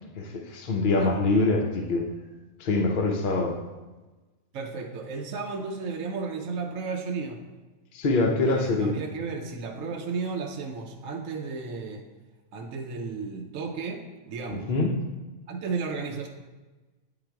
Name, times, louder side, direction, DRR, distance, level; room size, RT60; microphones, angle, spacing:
voice 1, 0.0-2.1 2.6-3.6 7.9-9.0 14.5-14.9, left 2 dB, 55° left, 2 dB, 0.6 m, -24 dB
voice 2, 4.5-7.4 8.5-12.0 12.5-14.7 15.5-16.3, right 4 dB, 65° right, 2 dB, 1.0 m, -33 dB
8.7 x 3.9 x 4.5 m, 1.2 s
omnidirectional pair, 1.5 m